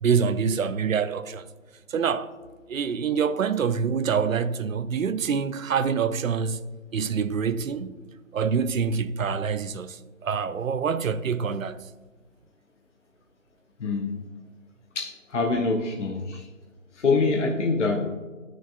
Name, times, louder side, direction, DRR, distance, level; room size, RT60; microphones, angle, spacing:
voice 1, 0.0-1.5 1.9-2.3 2.7-6.6 6.9-8.0 8.3-11.8, right 6 dB, 75° right, 0.5 m, -26 dB
voice 2, 13.8-14.2 14.9-16.5 16.9-18.0, left 3 dB, 60° left, 0.9 m, -25 dB
11.5 x 6.2 x 2.5 m
figure-of-eight pair, 155°, 41 cm